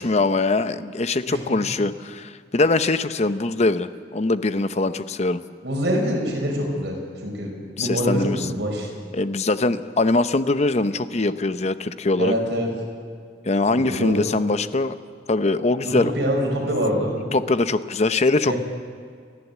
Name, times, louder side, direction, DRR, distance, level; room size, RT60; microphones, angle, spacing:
voice 1, 0.0-5.4 7.8-8.5 9.1-12.3 13.4-14.9 15.3-16.1 17.3-18.5, left 2 dB, 35° left, 12 dB, 0.7 m, -22 dB
voice 2, 5.6-8.9 12.2-12.7 13.7-14.1 15.8-17.2 18.5-18.6, equal, 65° right, 0 dB, 5.4 m, -25 dB
29.5 x 11.5 x 8.4 m, 2.1 s
head